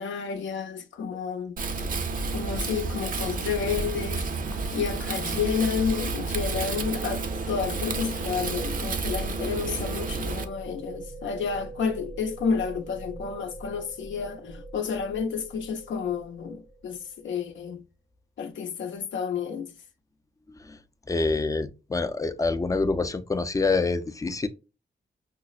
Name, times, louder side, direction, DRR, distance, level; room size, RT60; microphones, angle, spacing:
voice 1, 0.0-1.6 2.3-4.2 4.7-17.8 18.4-19.7, left 6 dB, 75° left, 0.5 m, -30 dB
Wind, 1.6-10.4, right 3 dB, 45° right, 0.5 m, -30 dB
sound 1, 5.4-17.2, right 2 dB, 90° right, 1.6 m, -44 dB
voice 2, 21.1-24.5, left 3 dB, 15° left, 0.3 m, -26 dB
5.7 x 2.0 x 2.3 m
wide cardioid pair, 110°, 20 cm